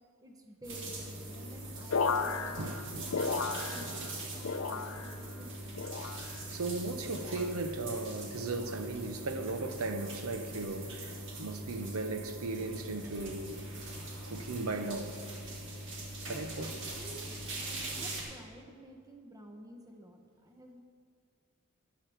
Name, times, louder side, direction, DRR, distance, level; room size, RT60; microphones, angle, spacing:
voice 1, 0.2-3.4 3.7-4.1 4.6-5.8 16.3-20.8, equal, 15° right, 1.0 m, -52 dB
sound 1, 0.6-18.2, right 1 dB, 55° right, 2.0 m, -42 dB
sound 2, 1.9-4.1 4.4-5.3 5.8-6.5 7.1-7.5 8.4-8.8 9.7-10.0, left 4 dB, 65° left, 0.5 m, -35 dB
voice 2, 2.6-3.1 6.5-13.7 14.3-15.2 16.2-16.8, right 3 dB, 75° right, 0.8 m, -37 dB
13.0 x 10.5 x 3.5 m
head